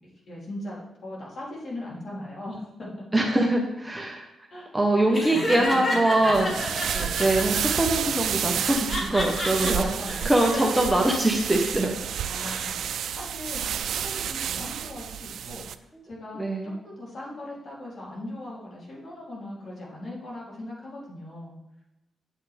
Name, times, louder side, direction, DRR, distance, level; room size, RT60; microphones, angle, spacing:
voice 1, 0.3-3.0 4.5-4.7 5.4-6.4 6.9-7.3 9.6-10.3 10.6-11.2 12.3-15.6 16.0-21.6, left 1 dB, 50° left, -5 dB, 3.1 m, -39 dB
voice 2, 3.1-4.3 4.7-6.9 7.2-12.0 12.4-12.6 16.3-16.7, right 1 dB, 5° right, 0 dB, 1.1 m, -23 dB
Laughter, 5.1-7.7 8.5-9.7 10.2-10.6, left 1 dB, 30° left, 1.9 m, -30 dB
sound 1, 6.2-15.7, right 9 dB, 75° right, 0.4 m, -30 dB
8.5 x 7.2 x 3.4 m, 0.91 s
cardioid pair, 125°, 0 cm